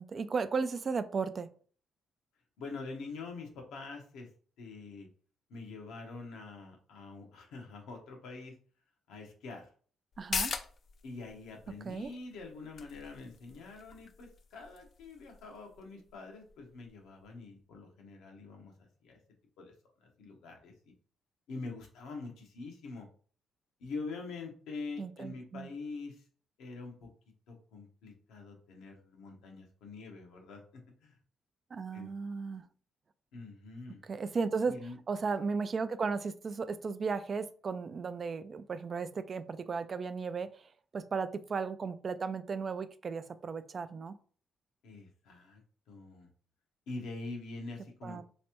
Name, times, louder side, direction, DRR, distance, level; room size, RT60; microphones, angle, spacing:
voice 1, 0.0-1.5 10.2-10.5 11.8-12.1 25.0-25.7 31.7-32.7 34.0-34.7 35.1-44.2 48.0-48.2, right 5 dB, 40° right, 12 dB, 0.3 m, -35 dB
voice 2, 2.6-4.3 4.6-5.1 5.5-8.5 9.1-9.7 11.0-19.2 19.6-19.7 20.0-20.7 21.5-23.1 23.8-26.2 26.6-27.1 27.5-31.1 31.9-32.1 33.3-34.0 34.6-35.0 44.8-45.6 45.9-46.3 46.9-48.2, left 3 dB, 85° left, 1 dB, 1.0 m, -45 dB
sound 1, 10.1-17.3 17.6-17.7, left 5 dB, 50° left, 0.4 m, -43 dB
3.4 x 3.1 x 2.9 m, 0.44 s
cardioid pair, 90°, 0 cm